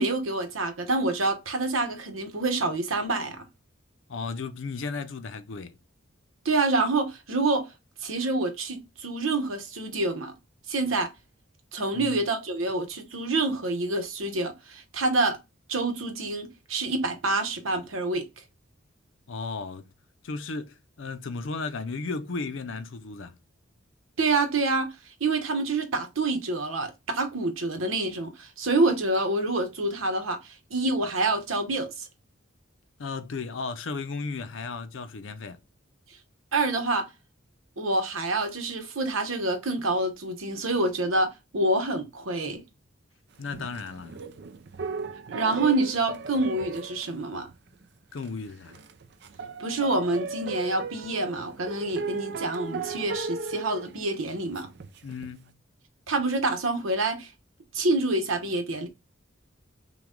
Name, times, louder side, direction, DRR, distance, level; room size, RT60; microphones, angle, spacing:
voice 1, 0.0-3.4 6.4-7.7 8.0-10.3 10.7-11.1 11.7-15.4 15.7-18.3 24.2-24.9 25.2-32.1 36.5-37.1 37.8-42.6 45.3-47.5 49.6-54.7 56.1-57.3 57.7-58.9, right 2 dB, 90° right, 1.0 m, -27 dB
voice 2, 4.1-5.8 11.9-12.2 19.3-19.9 20.2-23.4 33.0-35.6 43.4-44.2 48.1-48.8 55.0-55.6, left 4 dB, 70° left, 0.6 m, -35 dB
sound 1, 43.4-47.8 48.2-48.3 48.7-55.3, right 4 dB, 60° right, 0.5 m, -37 dB
6.0 x 2.3 x 3.7 m
head